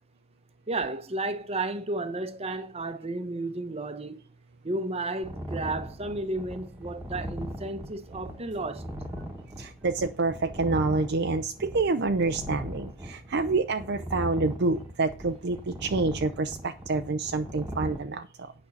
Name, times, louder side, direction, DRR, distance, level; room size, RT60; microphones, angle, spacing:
voice 1, 0.7-4.2 4.6-8.9, right 2 dB, 30° right, 0.9 m, -33 dB
sound 1, 5.2-18.0, equal, 10° right, 1.3 m, -39 dB
voice 2, 9.6-18.5, right 3 dB, 50° right, 0.6 m, -28 dB
8.8 x 5.4 x 7.1 m
head